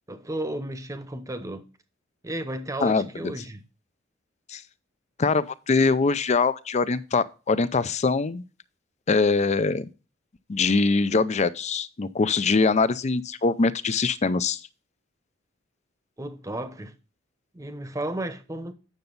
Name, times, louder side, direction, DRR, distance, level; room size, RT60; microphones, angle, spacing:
voice 1, 0.1-1.7 2.2-3.6 16.2-16.9 17.5-18.7, right 1 dB, 15° right, 0.9 m, -33 dB
voice 2, 2.8-3.3 4.5-4.6 5.2-8.4 9.1-9.9 10.5-14.6, left 4 dB, 35° left, 0.5 m, -23 dB
8.9 x 6.8 x 3.9 m
head